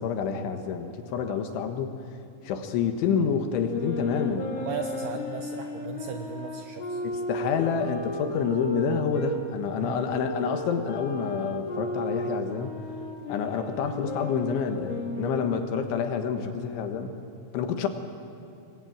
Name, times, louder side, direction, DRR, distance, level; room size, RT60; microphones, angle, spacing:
voice 1, 0.0-1.9 2.5-4.5 7.0-12.7 13.3-17.2 17.5-17.9, left 6 dB, 70° left, 6 dB, 3.5 m, -28 dB
sound 1, 3.6-9.4 10.1-15.6, left 1 dB, 45° left, 2.2 m, -34 dB
voice 2, 4.6-7.0 9.8-10.0 15.1-15.6, right 8 dB, 75° right, 4 dB, 2.4 m, -37 dB
26.5 x 21.0 x 8.8 m, 2.6 s
omnidirectional pair, 5.9 m